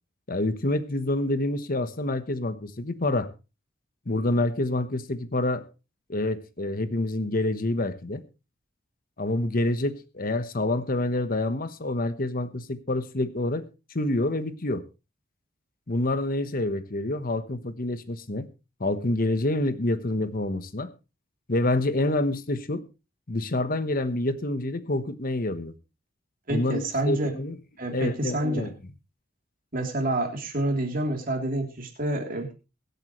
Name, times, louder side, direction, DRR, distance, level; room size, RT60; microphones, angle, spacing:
voice 1, 0.3-3.3 4.1-5.7 6.1-8.2 9.2-13.7 13.9-14.8 15.9-18.5 18.8-20.9 21.5-22.8 23.3-25.8 26.5-27.6 27.9-28.7, left 2 dB, 50° left, 12 dB, 1.1 m, -27 dB
voice 2, 26.5-27.3 27.8-28.7 29.7-32.5, right 1 dB, 50° right, 2 dB, 3.2 m, -28 dB
22.5 x 8.4 x 3.2 m, 0.30 s
head